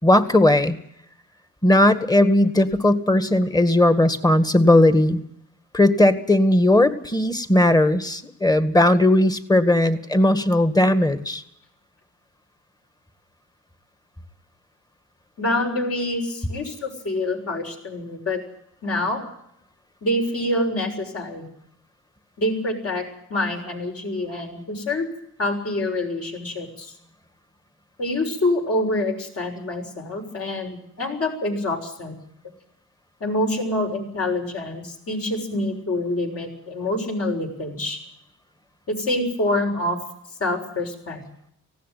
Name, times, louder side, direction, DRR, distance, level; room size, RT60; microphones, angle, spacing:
voice 1, 0.0-0.8 1.6-5.2 5.7-11.4, left 1 dB, 15° left, 11 dB, 1.9 m, -17 dB
voice 2, 15.4-18.4 18.8-19.2 20.0-21.5 22.4-25.1 25.4-26.9 28.0-32.2 33.2-38.0 38.9-40.0 40.4-41.2, left 1 dB, 50° left, 3 dB, 6.6 m, -26 dB
18.5 x 16.5 x 9.3 m, 0.74 s
cardioid pair, 90°, 30 cm